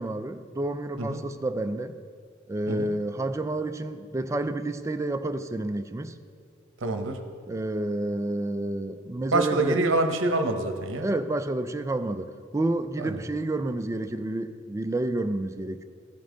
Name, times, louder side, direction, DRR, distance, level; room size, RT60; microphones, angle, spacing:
voice 1, 0.0-2.0 2.5-6.2 7.5-9.8 11.0-15.8, right 2 dB, 15° right, 0.3 m, -29 dB
voice 2, 6.8-7.2 9.3-11.1 13.0-13.2, right 2 dB, 70° right, 0.8 m, -26 dB
14.5 x 5.4 x 3.8 m
head